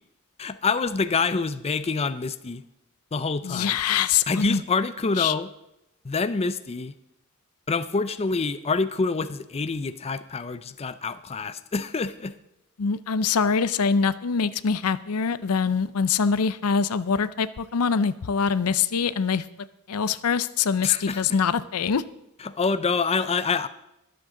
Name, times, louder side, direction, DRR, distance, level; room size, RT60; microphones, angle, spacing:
voice 1, 0.4-2.6 3.1-3.8 4.3-5.5 6.0-6.9 7.7-12.3 20.8-21.4 22.4-23.7, left 4 dB, 30° left, 12 dB, 0.5 m, -26 dB
voice 2, 3.4-4.6 5.2-5.3 12.8-19.4 19.9-22.0, left 6 dB, 85° left, 15 dB, 0.5 m, -24 dB
22.5 x 7.8 x 3.8 m, 0.87 s
head